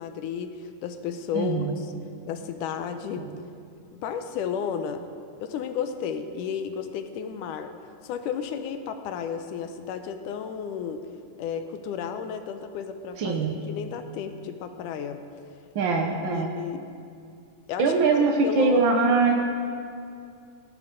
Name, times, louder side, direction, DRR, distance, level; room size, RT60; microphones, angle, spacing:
voice 1, 0.0-1.9 2.3-3.3 3.9-5.1 5.4-7.7 8.0-11.0 11.4-15.2 16.3-16.8 17.7-17.9 18.4-18.9, left 7 dB, 80° left, 8 dB, 2.3 m, -33 dB
voice 2, 1.3-1.8 3.2-3.3 13.2-13.6 15.7-16.5 17.8-19.3, right 4 dB, 80° right, 1 dB, 1.0 m, -22 dB
18.0 x 12.0 x 3.8 m, 2.4 s
omnidirectional pair, 3.7 m